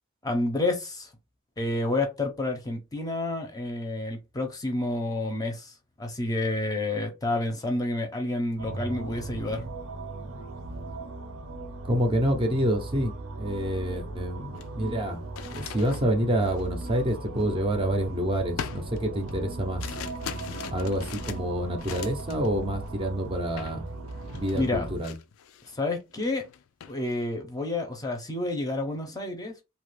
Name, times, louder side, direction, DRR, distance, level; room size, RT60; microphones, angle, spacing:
voice 1, 0.2-1.1 1.6-9.7 24.5-24.8 25.7-26.4 26.9-29.5, left 2 dB, 20° left, 0.6 m, -29 dB
sound 1, 8.6-25.0, right 2 dB, 80° right, 0.7 m, -38 dB
voice 2, 11.8-20.0 20.7-23.9 24.3-25.2, right 1 dB, 25° right, 0.6 m, -28 dB
sound 2, 13.9-14.1 14.4-18.0 18.6-22.5 22.8-23.1 23.6-23.8 24.1-25.7 26.1-27.0, left 7 dB, 80° left, 0.4 m, -41 dB
2.8 x 2.4 x 3.2 m
head